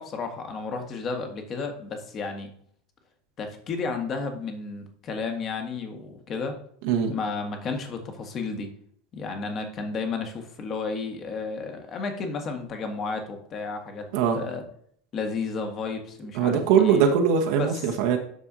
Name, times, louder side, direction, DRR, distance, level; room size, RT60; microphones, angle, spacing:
voice 1, 0.0-2.5 3.4-6.6 7.1-8.7 9.1-14.1 14.3-14.6 15.1-17.1 17.6-17.7, left 4 dB, 35° left, 4 dB, 1.8 m, -32 dB
voice 2, 16.3-18.2, right 7 dB, 60° right, 3 dB, 1.1 m, -21 dB
12.5 x 4.8 x 2.8 m, 0.63 s
figure-of-eight pair, 80°, 0 cm